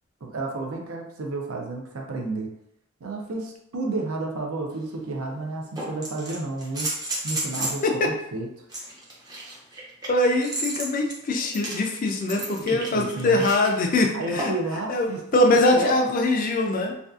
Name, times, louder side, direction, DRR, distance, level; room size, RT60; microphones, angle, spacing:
voice 1, 0.2-2.5 3.0-6.9 7.2-8.5 12.7-13.4 14.1-16.0, right 3 dB, 70° right, 1 dB, 0.5 m, -31 dB
sound 1, 4.7-4.8 5.8-7.9 8.7-13.7 14.4-14.7 16.4-16.5, right 2 dB, 15° right, 0.5 m, -33 dB
voice 2, 7.8-8.1 10.1-14.5 14.9-17.0, left 2 dB, 40° left, 2 dB, 0.3 m, -22 dB
2.5 x 2.3 x 2.3 m, 0.77 s
head